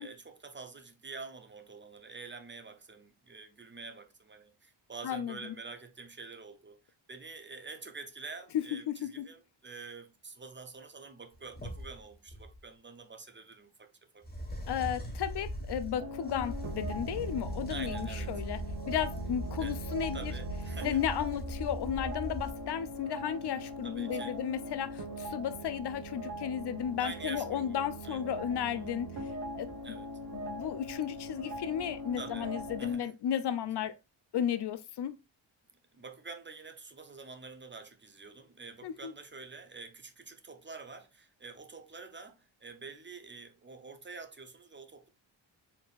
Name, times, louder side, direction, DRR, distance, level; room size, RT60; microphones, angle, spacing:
voice 1, 0.0-13.9 14.1-14.3 17.7-18.3 19.6-19.8 20.1-21.0 23.8-24.4 27.0-28.2 28.7-28.9 29.8-30.1 32.1-32.5 32.8-33.1 35.9-45.1, right 4 dB, 25° right, 0.6 m, -47 dB
voice 2, 5.0-5.4 8.5-9.2 14.7-18.6 18.9-20.3 20.8-29.1 29.6-29.7 30.3-33.9 34.3-35.2 38.8-39.1, left 9 dB, 60° left, 0.5 m, -34 dB
sound 1, 11.3-12.6 14.2-22.9, equal, 20° left, 1.4 m, -39 dB
sound 2, 16.0-32.9, right 1 dB, 65° right, 1.4 m, -41 dB
4.2 x 3.5 x 2.4 m
cardioid pair, 100°, 47 cm